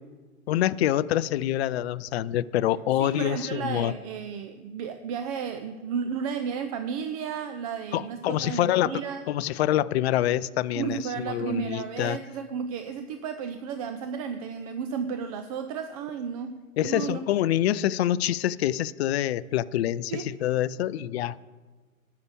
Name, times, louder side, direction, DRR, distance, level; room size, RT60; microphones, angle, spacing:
voice 1, 0.5-3.9 7.9-9.0 9.3-12.2 16.8-21.4, left 12 dB, 50° left, 16 dB, 0.5 m, -26 dB
voice 2, 3.0-9.2 10.7-17.2 20.1-20.3 20.9-21.1, right 7 dB, 30° right, 9 dB, 0.4 m, -33 dB
11.5 x 5.8 x 8.6 m, 1.3 s
figure-of-eight pair, 110°, 42 cm